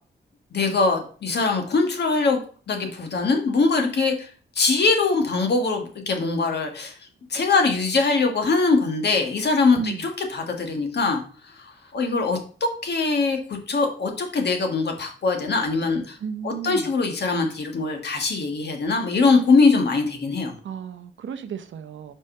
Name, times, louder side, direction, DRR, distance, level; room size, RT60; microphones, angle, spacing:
voice 1, 0.5-2.4 2.7-4.3 4.5-6.9 7.3-11.2 11.5-11.6 11.9-16.2 16.4-20.5, left 4 dB, 60° left, 1.7 m, -22 dB
voice 2, 9.8-10.1 16.2-16.9 20.6-22.1, right 6 dB, 80° right, 0.8 m, -34 dB
5.4 x 5.2 x 5.5 m
wide cardioid pair, 140°, 19 cm